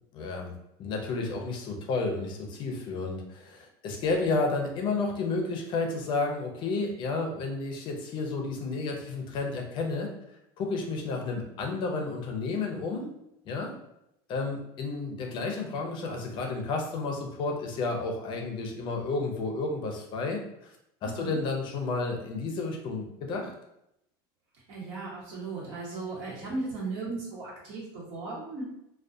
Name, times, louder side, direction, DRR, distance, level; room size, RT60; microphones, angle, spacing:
voice 1, 0.1-0.5 0.8-10.1 10.6-13.1 13.5-13.7 14.3-20.7 21.0-23.5, left 3 dB, 40° left, 2 dB, 0.5 m, -31 dB
voice 2, 21.0-21.4 24.7-28.6, right 3 dB, 60° right, -5 dB, 1.2 m, -36 dB
2.3 x 2.2 x 2.6 m, 0.81 s
supercardioid pair, 135°, 13 cm